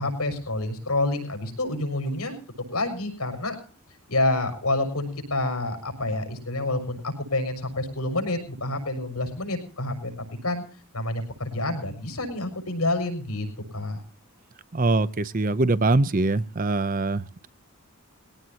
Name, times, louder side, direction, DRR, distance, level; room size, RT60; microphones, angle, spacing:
voice 1, 0.0-2.4 2.7-3.5 4.1-10.1 10.4-10.6 10.9-13.5 13.7-14.0, left 2 dB, 85° left, 6.4 m, -28 dB
voice 2, 14.7-17.5, right 2 dB, 35° right, 0.6 m, -23 dB
22.0 x 17.0 x 2.9 m
head